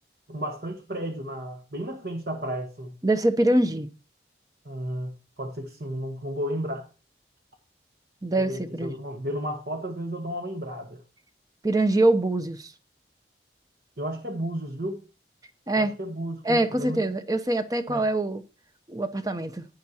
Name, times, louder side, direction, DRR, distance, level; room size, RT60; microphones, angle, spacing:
voice 1, 0.3-2.9 4.6-5.1 5.4-6.9 8.4-11.0 14.0-15.0 15.8-17.0 17.9-18.0, equal, 55° right, 1.3 m, -33 dB
voice 2, 3.0-3.9 8.2-8.9 11.6-12.7 15.7-15.9 16.4-18.4 18.9-19.6, right 1 dB, 20° right, 0.7 m, -24 dB
11.5 x 9.5 x 2.8 m
head